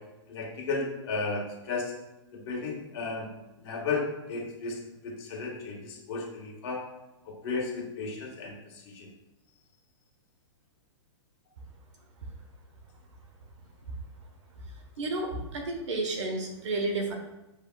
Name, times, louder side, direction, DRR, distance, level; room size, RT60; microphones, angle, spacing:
voice 1, 0.3-1.9 2.3-3.3 3.5-6.8 7.2-9.1, left 3 dB, 55° left, -1 dB, 1.5 m, -34 dB
voice 2, 15.5-17.1, right 2 dB, 75° right, 2 dB, 1.1 m, -31 dB
7.0 x 3.3 x 2.3 m, 0.99 s
hypercardioid pair, 130°, 16 cm